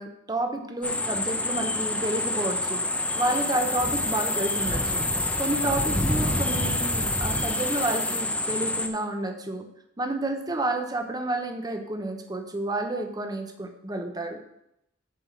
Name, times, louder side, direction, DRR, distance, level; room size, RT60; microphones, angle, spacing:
voice 1, 0.0-2.8 3.1-5.0 5.4-9.7 10.0-14.4, right 2 dB, 20° right, 5 dB, 0.9 m, -30 dB
sound 1, 0.8-8.9, left 2 dB, 5° left, 0.6 m, -27 dB
7.8 x 4.8 x 6.6 m, 0.80 s
head